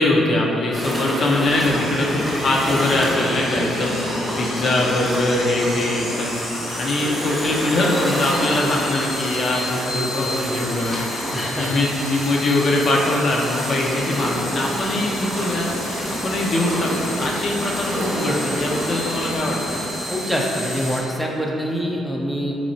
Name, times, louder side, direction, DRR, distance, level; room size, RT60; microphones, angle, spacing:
voice 1, 0.0-4.0 4.4-6.3 6.8-11.1 11.6-15.8 16.2-19.8, left 2 dB, 55° left, -2 dB, 0.5 m, -22 dB
sound 1, 0.7-19.4, equal, 15° right, 0.9 m, -30 dB
sound 2, 1.4-21.0, left 1 dB, 80° left, 1.4 m, -30 dB
voice 2, 11.3-11.7 20.1-22.5, equal, 5° left, -2 dB, 0.4 m, -25 dB
sound 3, 13.9-20.5, right 1 dB, 60° right, 0.6 m, -32 dB
3.9 x 3.1 x 2.6 m, 2.8 s
cardioid pair, 90°, 0 cm